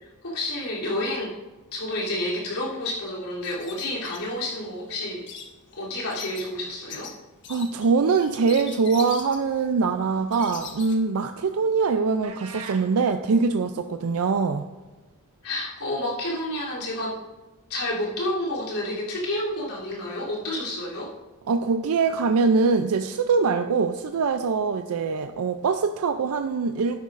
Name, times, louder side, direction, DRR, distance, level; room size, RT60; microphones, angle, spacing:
voice 1, 0.0-1.3 1.7-5.2 5.7-7.1 15.4-17.2 17.7-21.1, left 1 dB, 90° left, -6 dB, 3.2 m, -30 dB
sound 1, 3.4-11.0, left 7 dB, 55° left, 1.2 m, -42 dB
voice 2, 7.5-14.7 21.5-27.0, right 4 dB, 70° right, 7 dB, 0.4 m, -23 dB
sound 2, 12.2-12.9, right 5 dB, 90° right, 1.1 m, -39 dB
12.0 x 10.5 x 2.5 m, 1.2 s
head